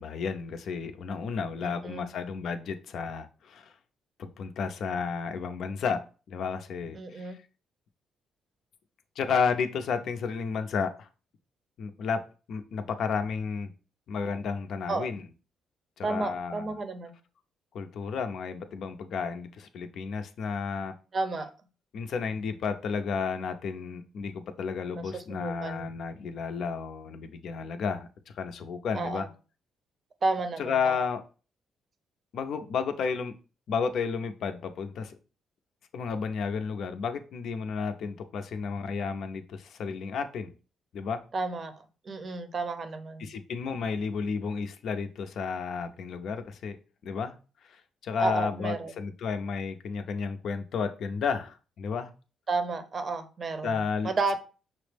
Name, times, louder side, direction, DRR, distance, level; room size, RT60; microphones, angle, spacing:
voice 1, 0.0-3.7 4.2-6.0 6.3-7.4 9.2-11.1 11.8-12.2 12.5-13.7 14.1-15.2 16.0-16.7 17.7-20.9 21.9-28.1 28.3-29.3 30.6-31.2 32.3-33.3 33.7-35.2 35.9-40.5 40.9-41.2 43.2-46.8 47.0-47.4 47.7-52.1 53.6-54.4, left 5 dB, 70° left, 8 dB, 0.5 m, -32 dB
voice 2, 1.6-2.1 7.0-7.4 14.9-15.1 16.0-17.1 21.1-21.5 25.0-26.0 28.9-29.3 30.2-31.0 41.3-41.7 42.1-43.3 48.2-48.9 52.5-54.4, right 3 dB, 40° right, 8 dB, 0.6 m, -32 dB
5.7 x 2.0 x 3.2 m, 0.35 s
cardioid pair, 90°, 0 cm